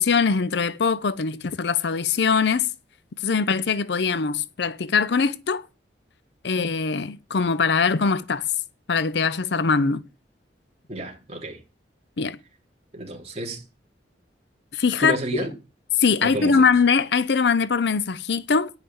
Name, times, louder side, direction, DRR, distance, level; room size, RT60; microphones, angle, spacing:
voice 1, 0.0-2.7 3.2-5.6 6.4-8.4 8.9-10.0 12.2-12.4 14.7-15.2 16.0-18.7, left 5 dB, 70° left, 0.6 m, -22 dB
voice 2, 10.9-11.6 12.9-13.6 15.0-15.5 16.2-16.7, right 1 dB, 35° right, 3.1 m, -30 dB
9.8 x 5.7 x 6.9 m
head